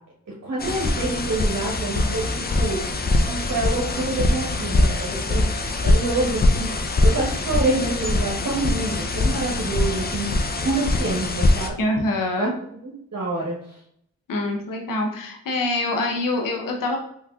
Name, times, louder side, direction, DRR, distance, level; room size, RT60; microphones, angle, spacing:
voice 1, 0.4-2.8 3.3-5.5 5.8-10.3 10.6-11.8 12.4-12.5 12.8-13.8, right 2 dB, 50° right, -3 dB, 1.1 m, -27 dB
sound 1, 0.6-11.7, left 2 dB, 30° left, 0.5 m, -23 dB
voice 2, 11.8-12.5 14.3-17.0, left 2 dB, 65° left, 2 dB, 0.8 m, -25 dB
3.4 x 3.2 x 2.3 m, 0.71 s
supercardioid pair, 45°, 35 cm